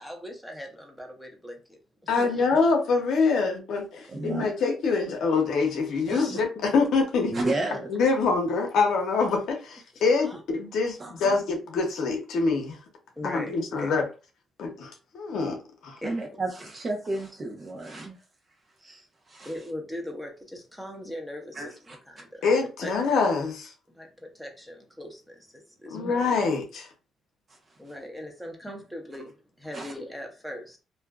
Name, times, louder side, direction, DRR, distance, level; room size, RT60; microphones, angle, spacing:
voice 1, 0.0-1.6 2.2-2.5 10.2-10.4 13.2-13.9 16.0-16.2 19.5-22.3 22.8-22.9 24.0-24.1 24.4-25.2 25.8-26.2 27.8-29.3 29.6-30.8, left 1 dB, ahead, 0.8 m, -39 dB
voice 2, 2.1-7.3 7.9-12.8 13.2-14.0 14.6-15.6 15.8-16.0 22.4-23.7 25.9-26.9, left 4 dB, 75° left, 0.7 m, -25 dB
voice 3, 4.1-4.5 6.1-6.4 7.3-7.9 11.0-11.4 16.0-18.1 18.8-19.5 21.5-22.0 25.9-26.1 29.7-29.9, right 2 dB, 40° right, 0.9 m, -32 dB
2.6 x 2.4 x 2.3 m
cardioid pair, 90°, 0 cm